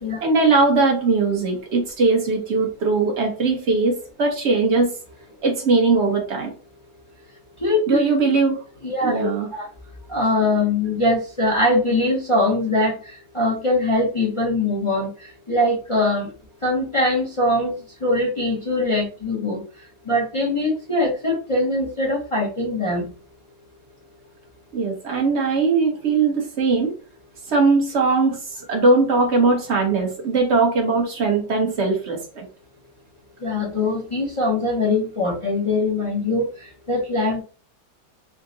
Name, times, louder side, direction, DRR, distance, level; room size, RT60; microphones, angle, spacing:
voice 1, 0.2-4.9 5.4-6.5 7.9-8.6 9.0-9.5 24.7-26.9 27.5-28.4 28.7-32.4, right 3 dB, 45° right, 2 dB, 1.0 m, -20 dB
voice 2, 7.6-8.0 8.8-9.6 10.1-16.3 16.6-19.6 20.1-23.1 33.4-36.4 36.9-37.4, left 2 dB, 50° left, -3 dB, 0.3 m, -22 dB
3.7 x 2.2 x 3.8 m, 0.36 s
omnidirectional pair, 2.0 m